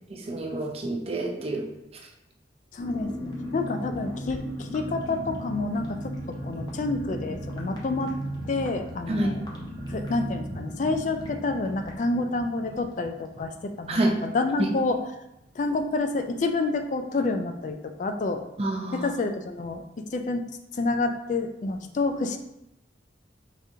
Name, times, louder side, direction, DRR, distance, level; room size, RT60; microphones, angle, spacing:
voice 1, 0.1-1.7 9.1-9.4 13.9-14.1 14.6-14.7 18.6-19.1, right 1 dB, 35° right, 1 dB, 0.5 m, -27 dB
voice 2, 2.7-6.1 6.4-8.1 8.5-9.4 9.9-15.0 15.6-18.4 18.9-19.8 20.1-20.4 20.7-22.4, left 3 dB, 40° left, 6 dB, 0.3 m, -28 dB
sound 1, 2.8-15.1 15.4-15.5 15.8-16.1, equal, 25° left, 0.8 m, -37 dB
5.0 x 3.5 x 2.7 m, 0.88 s
head